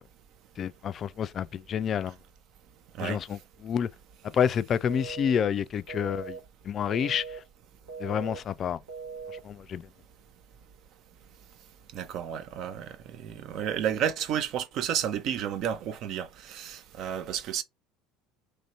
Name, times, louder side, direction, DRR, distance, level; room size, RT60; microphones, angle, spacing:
voice 1, 0.6-2.2 3.0-3.9 4.2-6.4 6.6-7.2 8.0-8.8 9.4-9.9, left 8 dB, 40° left, 0.3 m, -29 dB
sound 1, 4.9-5.4 5.9-6.4 6.9-7.4 7.9-8.4 8.9-9.4, right 5 dB, 75° right, 1.3 m, -39 dB
voice 2, 11.9-17.6, right 9 dB, 50° right, 0.6 m, -31 dB
3.2 x 2.7 x 4.3 m
figure-of-eight pair, 65°, 0 cm